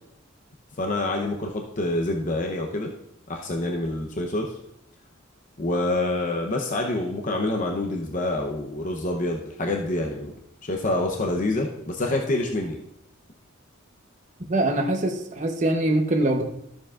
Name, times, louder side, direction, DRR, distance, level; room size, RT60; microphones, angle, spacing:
voice 1, 0.8-2.9 3.3-4.5 5.6-10.3 10.6-12.8, left 2 dB, 40° left, 1 dB, 0.8 m, -27 dB
voice 2, 14.5-16.4, right 1 dB, 40° right, 2 dB, 0.9 m, -23 dB
13.0 x 7.0 x 2.5 m, 0.75 s
head